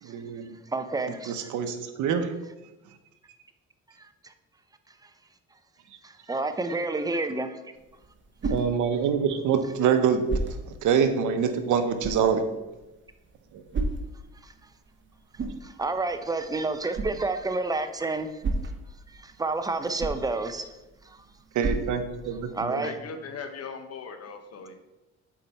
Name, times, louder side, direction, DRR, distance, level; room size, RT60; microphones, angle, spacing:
voice 1, 0.0-0.6 1.3-2.3 8.5-10.2 10.8-12.4 13.5-13.6 21.5-22.9, right 7 dB, 80° right, 8 dB, 0.9 m, -25 dB
voice 2, 0.7-1.5 4.0-4.3 5.0-5.1 6.0-7.6 8.4-8.5 14.4-14.5 15.6-18.4 19.1-20.7 21.0-21.3 22.5-22.9, right 3 dB, 10° right, 9 dB, 0.6 m, -30 dB
sound 1, 7.7-22.7, right 3 dB, 40° right, 1.0 m, -36 dB
voice 3, 22.8-24.8, left 5 dB, 55° left, 7 dB, 0.9 m, -39 dB
7.4 x 4.7 x 4.2 m, 1.0 s
cardioid pair, 90°, 30 cm